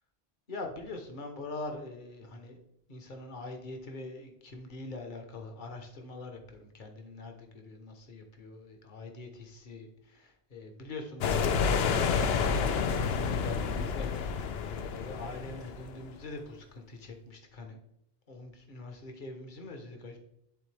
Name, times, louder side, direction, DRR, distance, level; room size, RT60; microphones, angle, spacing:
voice 1, 0.5-2.6 2.9-17.8 18.3-20.2, left 2 dB, 50° left, 4 dB, 1.2 m, -43 dB
sound 1, 11.2-16.2, left 6 dB, 80° left, 0.8 m, -29 dB
10.5 x 3.8 x 3.3 m, 0.78 s
omnidirectional pair, 1.0 m